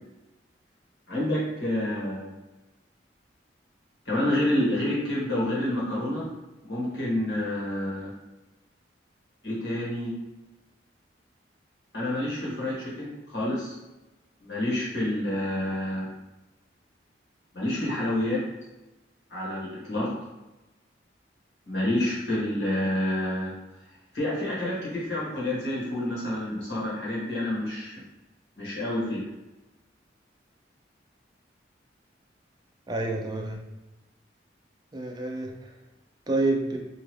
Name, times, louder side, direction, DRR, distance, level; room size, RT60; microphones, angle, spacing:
voice 1, 1.1-2.3 4.0-6.3 6.6-8.1 9.4-10.1 11.9-13.8 14.4-16.1 17.5-18.4 19.3-20.1 21.7-23.5 24.1-28.0 28.6-29.2, left 1 dB, 65° left, -6 dB, 1.3 m, -28 dB
voice 2, 32.9-33.6 34.9-35.7 36.3-36.8, right 2 dB, 20° right, 2 dB, 0.4 m, -28 dB
2.8 x 2.4 x 3.1 m, 1.0 s
head